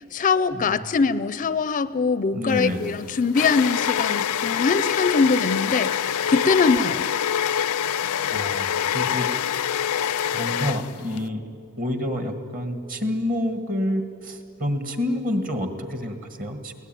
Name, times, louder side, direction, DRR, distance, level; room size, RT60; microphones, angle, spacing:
voice 1, 0.0-7.1, left 4 dB, 35° left, 16 dB, 0.5 m, -22 dB
voice 2, 0.5-0.8 2.3-3.0 8.3-8.7 8.9-9.3 10.0-11.5 11.8-16.7, left 1 dB, 40° right, 7 dB, 1.9 m, -28 dB
sound 1, 2.5-11.2, left 9 dB, 90° left, 0.5 m, -25 dB
22.5 x 17.5 x 9.2 m, 2.4 s
head